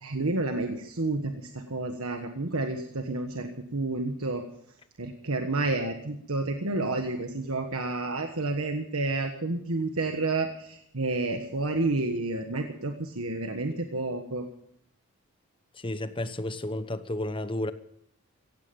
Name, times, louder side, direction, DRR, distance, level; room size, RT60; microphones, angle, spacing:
voice 1, 0.0-4.4 5.0-14.4, right 2 dB, 75° right, 1.5 m, -30 dB
voice 2, 15.8-17.7, left 1 dB, 25° left, 1.0 m, -32 dB
16.5 x 16.0 x 5.4 m
head